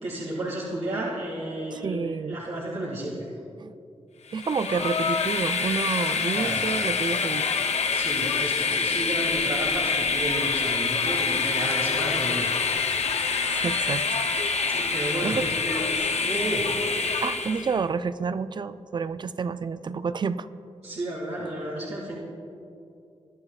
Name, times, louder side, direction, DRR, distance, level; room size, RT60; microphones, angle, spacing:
voice 1, 0.0-3.2 6.3-6.6 7.9-12.7 14.7-15.8 16.2-16.7 20.8-22.1, right 1 dB, 80° right, -7 dB, 2.2 m, -32 dB
voice 2, 1.7-2.4 3.6-3.7 4.3-7.5 13.5-14.2 15.2-15.5 17.2-20.5, right 5 dB, 40° right, 13 dB, 0.4 m, -29 dB
Train, 4.3-17.8, left 5 dB, 80° left, 0.7 m, -26 dB
21.0 x 10.5 x 2.4 m, 2.5 s
wide cardioid pair, 95°, 11 cm